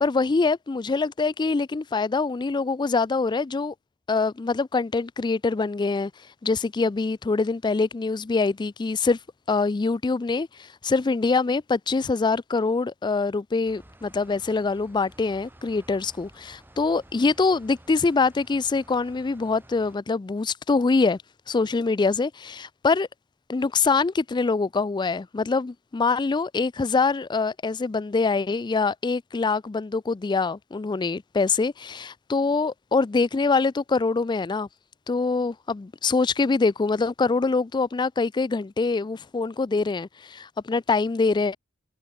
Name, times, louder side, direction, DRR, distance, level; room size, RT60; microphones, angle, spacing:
voice 1, 0.0-3.7 4.1-6.1 6.4-9.2 9.5-21.2 21.5-23.1 23.5-34.7 35.1-41.6, left 4 dB, 20° left, 0.3 m, -24 dB
sound 1, 13.6-20.0, right 1 dB, 10° right, 1.1 m, -52 dB
head